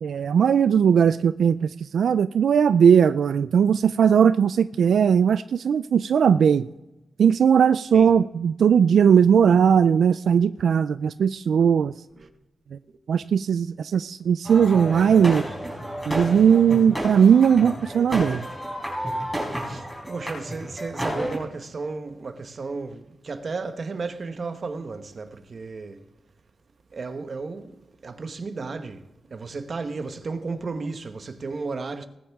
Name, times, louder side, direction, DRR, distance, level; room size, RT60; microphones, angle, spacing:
voice 1, 0.0-6.7 7.2-11.9 13.1-15.4 16.1-18.4, right 7 dB, 85° right, 0.3 m, -18 dB
sound 1, 14.4-21.4, right 1 dB, ahead, 4.6 m, -31 dB
voice 2, 19.6-26.0 26.9-27.7 28.0-29.0 29.3-32.1, right 4 dB, 40° right, 1.0 m, -33 dB
19.5 x 10.0 x 3.5 m
wide cardioid pair, 170°, 0 cm